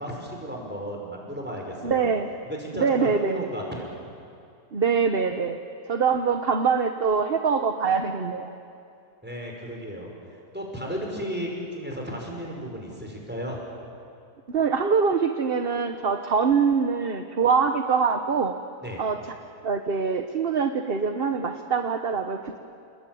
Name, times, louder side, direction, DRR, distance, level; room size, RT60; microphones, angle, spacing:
voice 1, 0.0-2.1 2.5-4.0 9.2-10.1 10.5-13.6 18.8-19.0, equal, 5° right, 0 dB, 5.8 m, -34 dB
voice 2, 1.8-2.3 2.7-3.4 4.7-5.6 5.9-8.5 14.5-18.6 19.0-19.3 19.6-22.6, right 5 dB, 40° right, 6 dB, 1.2 m, -24 dB
29.5 x 20.5 x 9.4 m, 2.5 s
omnidirectional pair, 1.7 m